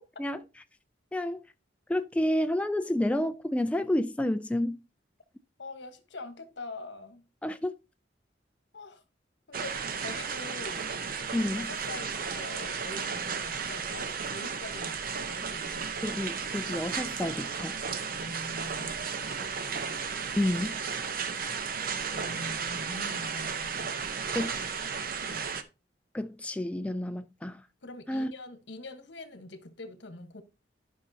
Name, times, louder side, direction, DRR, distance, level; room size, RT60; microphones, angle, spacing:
voice 1, 1.9-4.8 7.4-7.7 11.3-11.7 16.0-17.7 20.4-20.8 24.3-24.6 26.1-27.6 28.1-28.3, left 1 dB, 5° left, 0.3 m, -29 dB
voice 2, 5.6-7.2 8.7-9.0 9.5-10.9 11.5-15.9 18.1-20.0 21.8-24.4 25.3-25.5 27.8-30.4, left 2 dB, 80° left, 1.2 m, -44 dB
sound 1, 9.5-25.6, right 6 dB, 55° right, 0.7 m, -34 dB
12.5 x 5.4 x 2.7 m
head